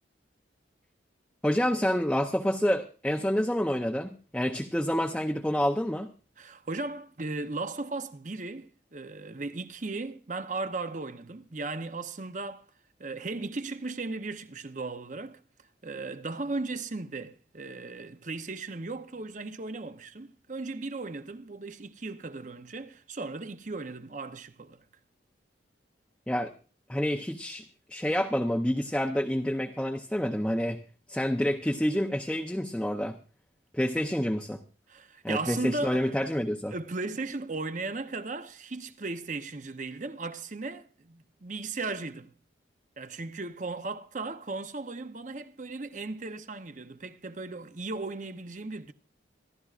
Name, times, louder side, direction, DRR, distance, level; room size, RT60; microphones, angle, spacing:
voice 1, 1.4-6.1 26.3-26.5 26.9-27.6 27.9-30.8 31.1-33.2 33.7-34.6 35.2-36.7, equal, 5° left, 0.6 m, -28 dB
voice 2, 6.4-12.7 13.0-15.4 15.8-24.8 34.9-36.3 36.7-42.3 43.0-48.9, right 3 dB, 40° right, 0.8 m, -36 dB
26.0 x 12.0 x 2.5 m
head